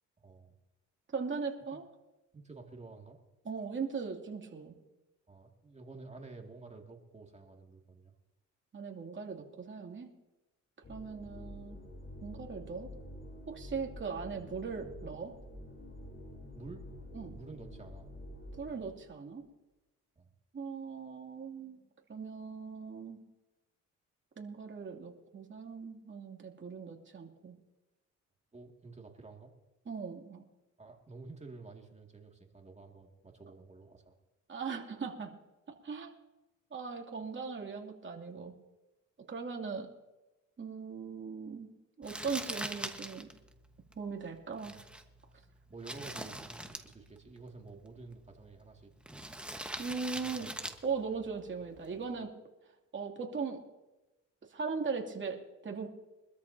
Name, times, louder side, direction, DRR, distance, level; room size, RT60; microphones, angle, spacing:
voice 1, 0.2-0.6 1.7-1.8 2.3-3.2 5.3-8.1 16.6-16.8 17.3-18.1 20.2-20.3 28.5-29.5 30.8-34.1 44.6-44.8 45.3-48.9 50.1-50.6, right 3 dB, 20° right, 2 dB, 2.2 m, -50 dB
voice 2, 1.1-1.8 3.4-4.8 8.7-10.1 10.9-11.8 12.2-12.9 13.5-15.3 17.1-17.3 18.6-19.5 20.5-21.8 22.1-23.2 24.4-27.6 29.9-30.4 34.5-35.3 35.7-36.2 36.7-38.5 39.3-39.9 40.6-41.7 42.0-43.3 44.0-44.8 49.8-50.5 50.8-52.3 52.9-53.6 54.5-55.9, right 5 dB, 40° right, 1 dB, 2.7 m, -39 dB
sound 1, 10.8-19.1, left 1 dB, 45° left, 5.3 m, -48 dB
Crumpling crinkling, 42.0-52.2, right 1 dB, 5° right, 1.3 m, -45 dB
24.5 x 13.0 x 2.8 m, 1.0 s
cardioid pair, 90°, 30 cm